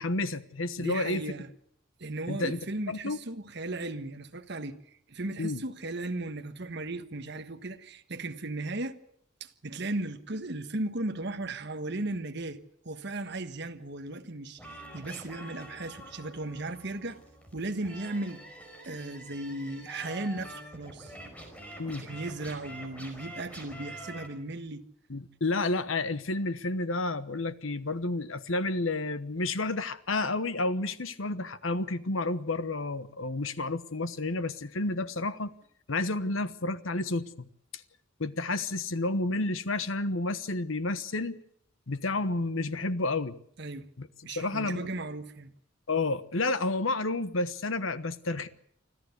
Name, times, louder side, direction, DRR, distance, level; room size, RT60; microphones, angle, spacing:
voice 1, 0.0-1.2 2.3-2.6 2.9-3.2 5.4-5.6 21.8-22.0 25.1-35.5 35.9-37.5 38.2-41.4 41.9-43.4 44.0-44.9 45.9-48.5, left 2 dB, 80° left, 1.1 m, -30 dB
voice 2, 0.8-1.5 2.0-4.8 5.1-9.0 9.4-17.2 17.5-18.4 18.8-21.1 21.9-24.8 43.6-43.9 44.2-45.5, right 2 dB, 55° right, 1.4 m, -36 dB
sound 1, 14.6-24.3, right 1 dB, 5° left, 4.8 m, -46 dB
25.5 x 14.0 x 8.2 m
head